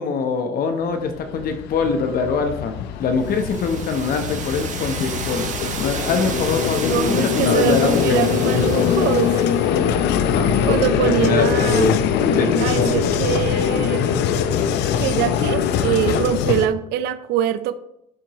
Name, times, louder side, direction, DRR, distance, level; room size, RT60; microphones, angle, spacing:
voice 1, 0.0-5.5 5.8-8.2 8.5-8.7 10.2-13.0, left 5 dB, 60° left, 6 dB, 0.9 m, -23 dB
Vehicle, 1.0-16.7, left 8 dB, 80° left, 0.6 m, -22 dB
sound 1, 3.2-9.8, right 6 dB, 45° right, 1.1 m, -32 dB
voice 2, 6.9-9.4 10.7-11.9 12.6-14.0 15.0-17.7, right 10 dB, 75° right, 13 dB, 0.4 m, -23 dB
11.5 x 4.5 x 3.0 m, 0.80 s
cardioid pair, 110°, 17 cm